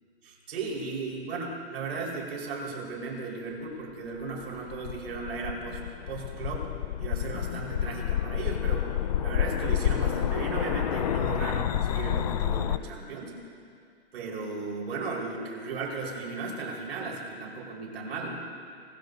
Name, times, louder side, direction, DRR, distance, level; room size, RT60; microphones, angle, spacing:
voice 1, 0.2-6.7 7.0-8.9 9.2-13.4 14.1-18.5, right 4 dB, 65° right, -1 dB, 4.7 m, -36 dB
sound 1, 4.4-12.8, left 10 dB, 35° left, 0.4 m, -29 dB
25.0 x 20.5 x 2.7 m, 2.3 s
hypercardioid pair, 160°, 33 cm